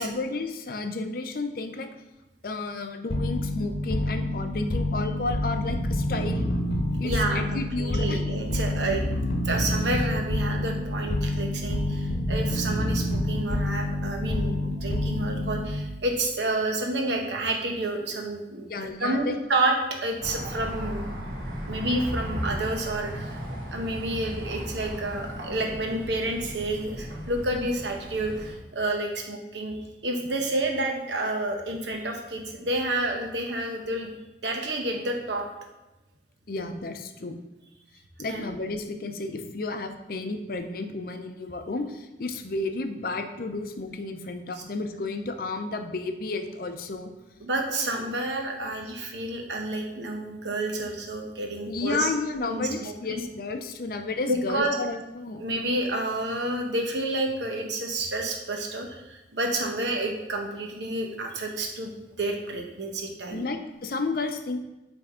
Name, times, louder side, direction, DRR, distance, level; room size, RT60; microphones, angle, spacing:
voice 1, 0.0-1.9 2.4-6.5 7.0-8.2 15.0-15.1 18.7-19.4 36.5-37.4 38.2-47.1 48.6-48.7 51.7-55.4 63.3-64.6, left 3 dB, 55° left, 6 dB, 0.5 m, -32 dB
sound 1, 3.1-16.0, left 1 dB, 70° left, 0.9 m, -28 dB
voice 2, 7.0-9.0 9.4-18.7 19.0-19.8 20.0-21.1 21.7-23.4 23.7-29.7 30.0-34.2 34.4-35.4 38.3-38.5 47.4-52.1 52.5-53.2 54.3-54.7 55.4-61.9 62.2-63.5, right 2 dB, 80° right, 2 dB, 1.0 m, -29 dB
sound 2, 20.2-28.5, equal, 55° right, 1.4 m, -36 dB
7.7 x 3.5 x 3.7 m, 0.99 s
head